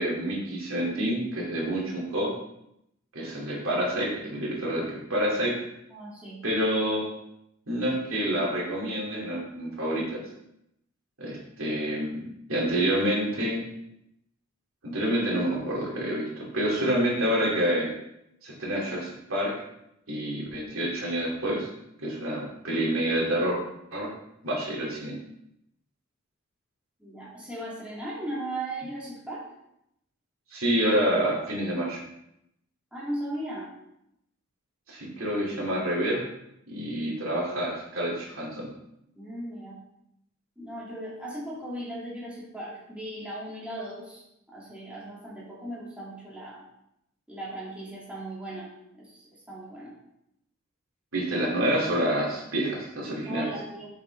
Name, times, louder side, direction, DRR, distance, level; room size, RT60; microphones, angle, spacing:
voice 1, 0.0-2.3 3.1-5.6 6.4-7.1 7.7-10.2 11.2-12.2 12.5-13.6 14.8-17.9 18.4-19.5 20.1-21.7 22.0-23.6 23.9-24.1 24.4-25.2 30.5-32.0 34.9-36.2 36.7-38.7 51.1-53.5, right 1 dB, 90° right, -4 dB, 2.7 m, -28 dB
voice 2, 5.9-6.4 27.0-29.5 32.9-33.7 39.1-39.8 40.6-46.7 47.3-49.9 53.2-53.9, right 1 dB, 5° right, -6 dB, 2.4 m, -37 dB
7.0 x 7.0 x 3.4 m, 0.80 s
head